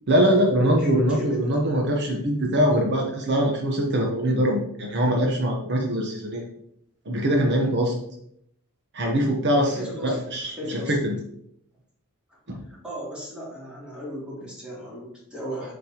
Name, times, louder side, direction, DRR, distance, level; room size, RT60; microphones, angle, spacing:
voice 1, 0.1-6.4 7.1-8.0 8.9-11.2 12.5-12.6, equal, 50° right, 1 dB, 0.9 m, -23 dB
voice 2, 0.8-1.4 9.7-10.2 10.6-11.0 12.7-15.7, equal, 5° right, -7 dB, 2.9 m, -36 dB
7.7 x 5.2 x 2.9 m, 0.72 s
head